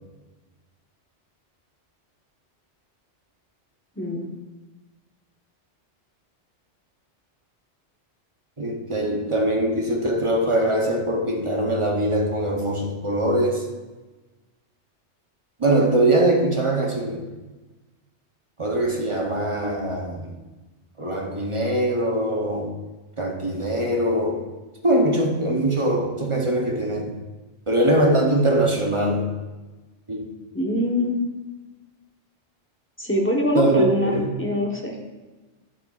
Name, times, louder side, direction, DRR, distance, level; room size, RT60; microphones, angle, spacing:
voice 1, 4.0-4.3 30.5-31.3 33.0-35.0, left 1 dB, 10° left, 0 dB, 1.0 m, -24 dB
voice 2, 8.6-13.6 15.6-17.3 18.6-20.4 21.0-22.7 23.2-24.5 24.8-27.2 27.7-29.3 30.1-30.3 33.5-33.8 34.1-34.3, right 1 dB, 30° right, 1 dB, 0.8 m, -22 dB
11.0 x 8.7 x 2.4 m, 1.2 s
omnidirectional pair, 1.2 m